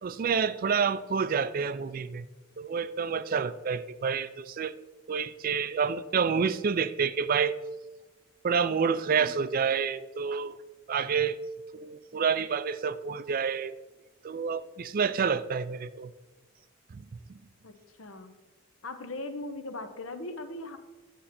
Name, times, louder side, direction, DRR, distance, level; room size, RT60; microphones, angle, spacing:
voice 1, 0.0-2.3 2.6-4.7 5.1-7.6 8.4-10.6 10.9-11.4 11.7-13.7 14.2-16.1 16.9-17.4, right 6 dB, 40° right, 15 dB, 0.3 m, -28 dB
voice 2, 17.6-18.4 18.8-20.8, left 2 dB, 75° left, 8 dB, 1.0 m, -39 dB
10.0 x 7.7 x 4.2 m, 1.2 s
head